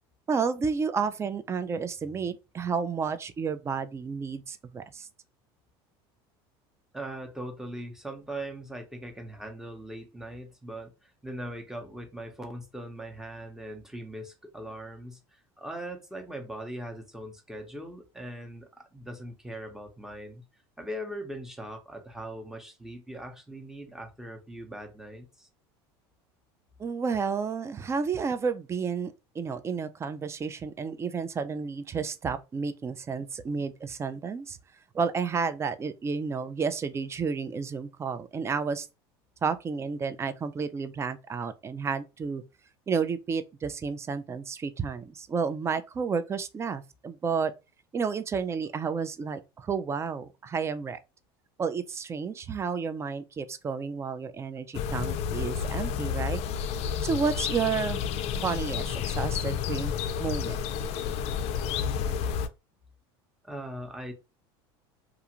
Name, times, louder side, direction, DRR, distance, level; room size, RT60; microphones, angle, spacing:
voice 1, 0.3-5.1 26.8-34.6 34.9-38.9 39.4-42.4 42.9-47.5 47.9-51.0 51.6-56.4 57.0-58.0 58.4-59.9 60.2-60.6, right 5 dB, 20° right, 0.3 m, -31 dB
voice 2, 6.9-20.4 20.8-25.5 63.4-64.1, right 1 dB, 5° right, 0.8 m, -40 dB
sound 1, 54.7-62.5, left 7 dB, 55° left, 0.4 m, -30 dB
2.4 x 2.4 x 2.9 m
supercardioid pair, 100°, 13 cm